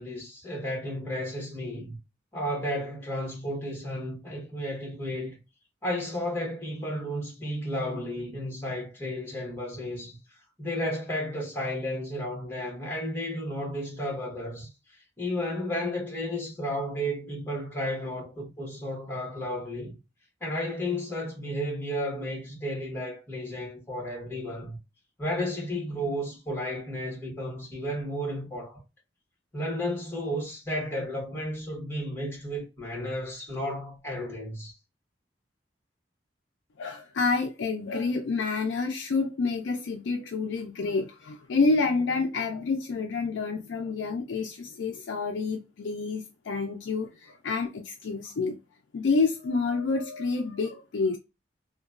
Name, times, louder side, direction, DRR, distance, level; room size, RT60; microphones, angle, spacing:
voice 1, 0.0-2.0 2.3-5.4 5.8-10.2 10.6-14.7 15.2-20.0 20.4-24.8 25.2-28.8 29.5-34.7, equal, 10° left, 1.2 m, -33 dB
voice 2, 36.8-48.6 48.9-51.2, left 4 dB, 75° left, 0.4 m, -28 dB
2.9 x 2.2 x 2.3 m
head